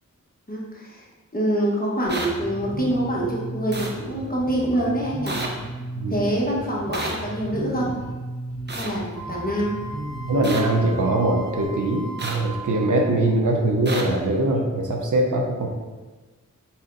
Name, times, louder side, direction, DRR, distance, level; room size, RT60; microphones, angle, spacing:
voice 1, 0.5-1.0 1.3-5.4 6.1-7.9 8.7-9.7, right 1 dB, 30° left, -5 dB, 1.1 m, -25 dB
sound 1, 2.1-2.3 3.7-3.9 5.3-5.5 6.9-7.1 8.7-8.9 10.4-10.6 12.2-12.4 13.9-14.0, right 2 dB, 35° right, 0.6 m, -30 dB
Bass guitar, 2.1-11.7, right 1 dB, 50° right, 1.4 m, -35 dB
voice 2, 6.0-6.3 10.3-15.7, right 2 dB, 70° right, 1 dB, 0.7 m, -22 dB
Wind instrument woodwind instrument, 9.1-13.3, right 2 dB, 75° left, 1.3 m, -38 dB
4.3 x 4.2 x 2.5 m, 1.3 s
wide cardioid pair, 60°, 31 cm